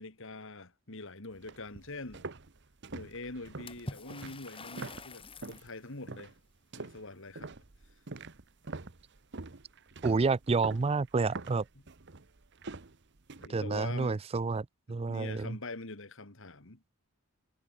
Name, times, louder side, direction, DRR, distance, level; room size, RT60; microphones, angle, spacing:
voice 1, 0.0-2.3 2.9-6.3 6.8-7.5 13.4-14.2 15.1-16.8, left 2 dB, 60° left, 2.4 m, -44 dB
sound 1, 1.3-5.7 6.1-6.4 6.7-13.5, right 3 dB, 55° right, 1.2 m, -45 dB
Water / Splash splatter, 3.7-5.7, left 2 dB, 25° left, 3.5 m, -45 dB
voice 2, 10.0-11.6 13.5-15.6, right 4 dB, 25° right, 0.4 m, -29 dB
head